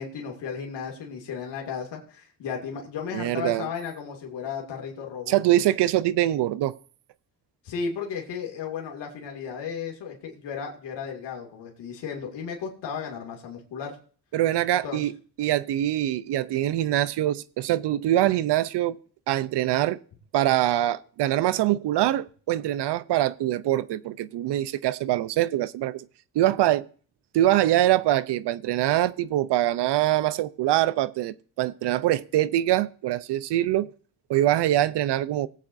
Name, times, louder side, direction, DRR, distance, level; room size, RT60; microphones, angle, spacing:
voice 1, 0.0-5.3 7.6-14.0 14.8-15.1, left 6 dB, 90° left, 2.3 m, -34 dB
voice 2, 3.1-3.7 5.3-6.8 14.3-15.1 15.4-19.0 19.3-20.0 20.3-26.0 26.3-26.9 27.3-33.9 34.3-35.5, right 13 dB, 80° right, 0.6 m, -24 dB
19.5 x 8.4 x 2.6 m
cardioid pair, 115°, 41 cm